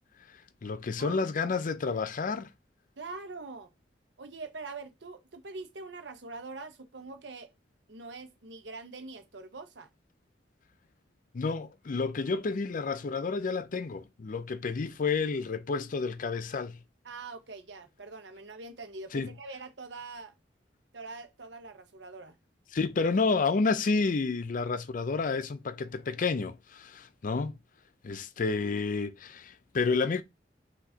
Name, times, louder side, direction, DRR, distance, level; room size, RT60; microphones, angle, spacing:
voice 1, 0.3-2.5 11.3-16.8 19.1-19.3 22.7-27.5 28.0-30.2, left 4 dB, 50° left, 0.5 m, -30 dB
voice 2, 1.0-1.5 3.0-3.7 4.2-7.5 7.9-9.9 17.0-20.3 20.9-22.4, right 3 dB, 80° right, 1.0 m, -44 dB
5.8 x 2.8 x 2.8 m
head